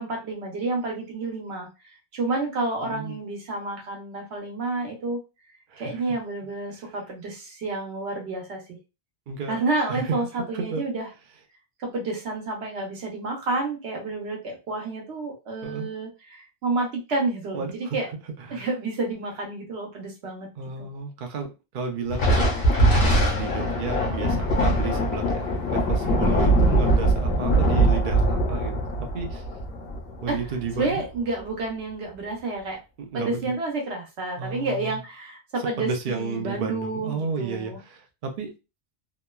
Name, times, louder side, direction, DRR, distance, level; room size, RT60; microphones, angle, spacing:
voice 1, 0.0-5.2 5.8-8.6 9.5-11.1 11.8-18.1 18.5-20.5 26.2-26.5 30.3-30.4 30.7-32.8 33.1-37.8, right 3 dB, 85° right, 0 dB, 1.1 m, -30 dB
voice 2, 2.8-3.2 5.7-6.0 9.3-9.6 9.9-10.2 10.5-10.8 15.6-15.9 17.5-18.0 18.5-18.7 20.6-22.5 22.9-28.7 29.0-29.4 30.2-31.0 33.0-33.5 34.4-35.0 35.8-38.5, right 5 dB, 55° right, 4 dB, 0.7 m, -32 dB
Thunder, 22.1-30.9, right 1 dB, 60° left, 1.2 m, -22 dB
2.9 x 2.2 x 2.2 m, 0.28 s
omnidirectional pair, 1.1 m